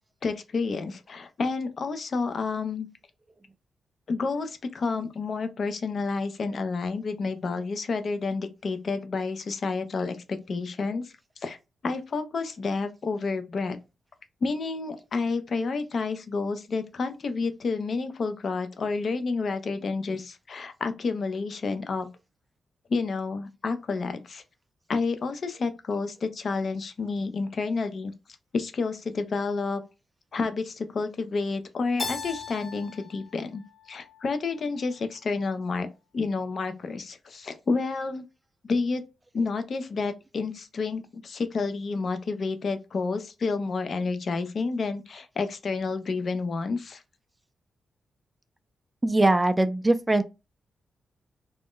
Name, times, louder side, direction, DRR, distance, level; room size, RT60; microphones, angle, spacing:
voice 1, 0.2-2.9 4.1-11.6 11.8-13.8 14.4-22.1 22.9-24.4 24.9-28.1 28.5-29.8 30.3-33.6 33.9-35.9 36.1-38.2 38.6-39.0 39.3-47.0, left 4 dB, 55° left, 0.5 m, -30 dB
Keyboard (musical), 32.0-34.8, left 4 dB, 30° left, 0.8 m, -39 dB
voice 2, 49.0-50.2, right 2 dB, 15° right, 0.4 m, -21 dB
2.5 x 2.1 x 3.6 m
cardioid pair, 90°, 0 cm